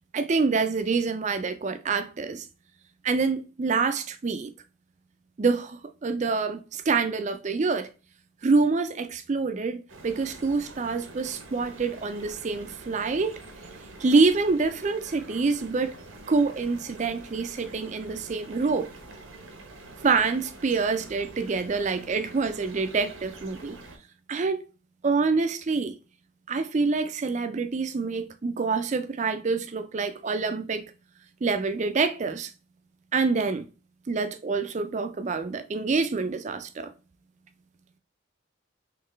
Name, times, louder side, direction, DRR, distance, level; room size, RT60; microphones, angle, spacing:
voice 1, 0.1-2.4 3.0-4.5 5.4-7.9 8.4-13.4 14.0-15.9 16.3-18.9 20.0-23.8 24.3-24.6 25.0-25.9 26.5-30.9 31.4-32.5 33.1-33.7 34.1-36.9, right 4 dB, 35° right, 0.4 m, -26 dB
sound 1, 9.9-24.0, right 2 dB, 85° right, 1.0 m, -46 dB
3.9 x 3.1 x 3.2 m
head